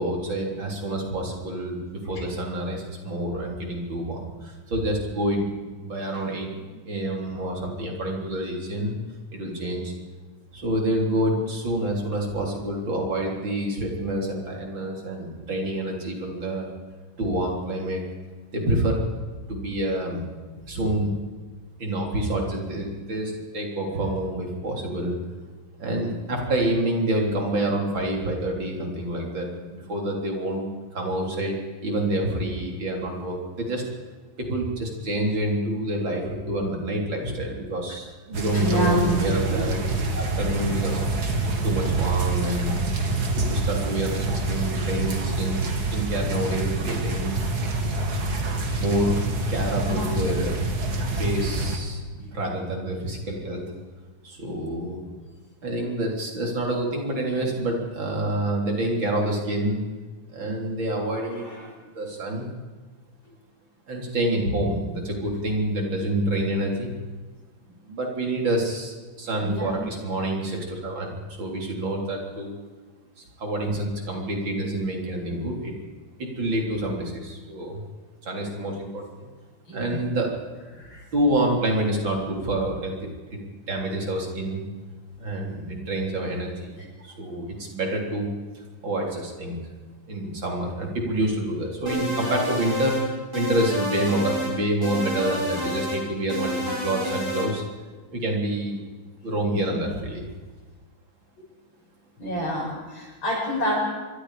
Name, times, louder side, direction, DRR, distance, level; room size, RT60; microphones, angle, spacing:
voice 1, 0.0-6.5 6.8-8.9 9.3-9.9 10.5-16.7 17.2-18.0 18.5-19.0 19.5-20.2 20.7-21.1 21.8-25.2 25.8-30.7 30.9-31.5 31.8-33.8 34.4-39.8 40.1-41.0 41.6-42.8 43.4-45.6 45.9-47.4 48.8-49.2 49.5-50.5 51.2-52.0 52.3-53.6 54.2-55.0 55.6-59.8 60.3-61.5 61.9-62.5 63.9-66.9 67.6-72.5 73.2-75.7 76.2-77.8 78.2-79.3 79.7-80.3 81.1-83.4 83.7-84.7 85.2-88.3 88.5-89.6 90.1-97.6 98.1-98.8 99.2-100.2, right 1 dB, 75° right, 0 dB, 4.5 m, -27 dB
sound 1, 38.3-51.8, right 2 dB, 55° right, 2.6 m, -27 dB
voice 2, 38.5-39.9 49.8-50.2 52.1-52.3 61.3-61.7 69.4-69.7 79.7-80.0 80.8-81.0 99.5-99.6 102.2-103.8, equal, 85° left, -3 dB, 7.8 m, -28 dB
sound 2, 91.9-93.1 93.3-94.5 94.8-96.0 96.3-97.5, equal, 15° right, 8.0 m, -29 dB
26.0 x 23.0 x 5.0 m, 1.3 s
omnidirectional pair, 2.1 m